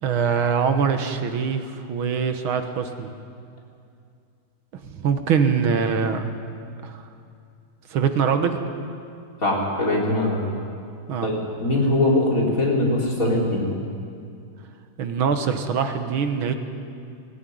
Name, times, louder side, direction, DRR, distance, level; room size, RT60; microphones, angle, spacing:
voice 1, 0.0-3.1 4.8-6.2 6.8-7.0 7.9-8.6 11.1-11.3 15.0-16.5, right 6 dB, 80° right, 7 dB, 2.1 m, -23 dB
voice 2, 9.4-10.4 11.2-13.6, left 1 dB, 40° left, -3 dB, 4.2 m, -21 dB
18.5 x 18.0 x 9.4 m, 2.4 s
omnidirectional pair, 2.3 m